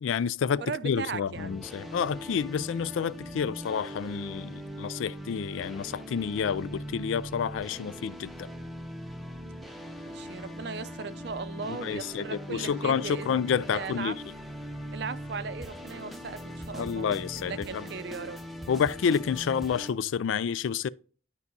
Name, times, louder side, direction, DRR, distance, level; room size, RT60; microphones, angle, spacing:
voice 1, 0.0-8.5 11.7-14.1 16.8-17.8 18.7-20.9, left 7 dB, 85° left, 0.3 m, -29 dB
voice 2, 0.6-1.6 10.1-14.2 14.9-18.4, right 5 dB, 60° right, 0.5 m, -38 dB
sound 1, 1.3-19.9, equal, ahead, 0.6 m, -41 dB
12.0 x 4.7 x 2.7 m
head